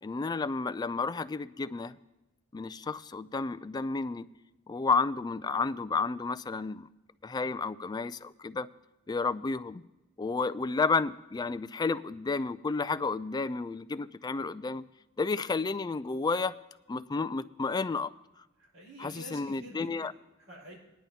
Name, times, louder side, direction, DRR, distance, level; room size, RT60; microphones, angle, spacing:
voice 1, 0.0-1.9 2.5-4.3 4.7-6.9 7.2-8.7 9.1-9.8 10.2-14.8 15.2-16.6 16.9-18.1 19.0-20.1, left 4 dB, 20° left, 14 dB, 0.3 m, -31 dB
voice 2, 18.6-20.8, right 1 dB, 85° right, -2 dB, 5.1 m, -48 dB
18.5 x 10.5 x 2.8 m, 1.0 s
head